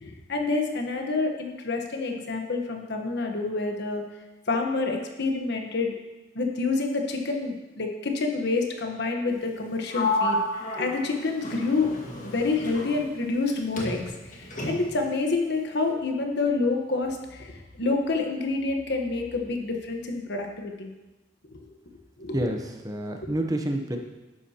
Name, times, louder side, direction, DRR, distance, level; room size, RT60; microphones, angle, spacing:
voice 1, 0.0-4.0 4.5-5.9 6.3-10.4 10.8-11.9 12.2-14.3 14.6-20.9 22.2-22.4, left 3 dB, 60° left, 3 dB, 1.2 m, -28 dB
Sliding door, 9.9-13.5 13.8-15.1, left 1 dB, 40° left, 1.8 m, -31 dB
voice 2, 22.3-24.0, right 1 dB, 20° right, 3 dB, 0.8 m, -28 dB
11.5 x 9.7 x 2.9 m, 1.1 s
head